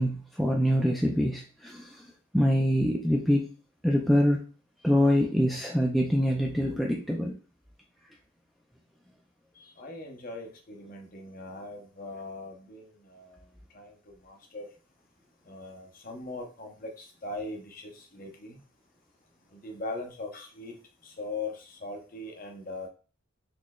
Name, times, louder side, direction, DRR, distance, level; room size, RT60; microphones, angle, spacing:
voice 1, 0.0-2.0 2.3-3.5 3.8-4.4 4.8-7.3, equal, ahead, 0 dB, 0.3 m, -25 dB
voice 2, 9.8-13.4 13.7-13.9 14.2-14.7 15.5-18.6 19.5-20.7 21.0-22.9, left 2 dB, 40° left, 2 dB, 0.7 m, -40 dB
4.1 x 3.1 x 2.3 m, 0.37 s
head